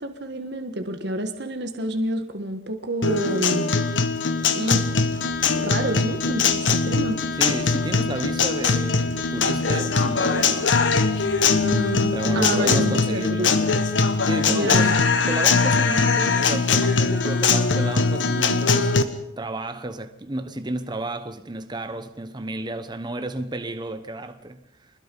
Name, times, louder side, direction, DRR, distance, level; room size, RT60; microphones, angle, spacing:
voice 1, 0.0-3.7 4.6-5.2 5.6-7.2 11.6-13.7 14.5-15.0, right 1 dB, 60° right, 1.6 m, -28 dB
Guitar, 3.0-19.0, left 4 dB, 80° left, 1.6 m, -21 dB
sound 1, 4.8-12.6, equal, 45° left, 7.4 m, -49 dB
voice 2, 7.4-10.7 12.1-13.6 14.2-19.1 19.4-24.9, right 2 dB, 25° right, 1.0 m, -32 dB
25.0 x 21.0 x 5.5 m
head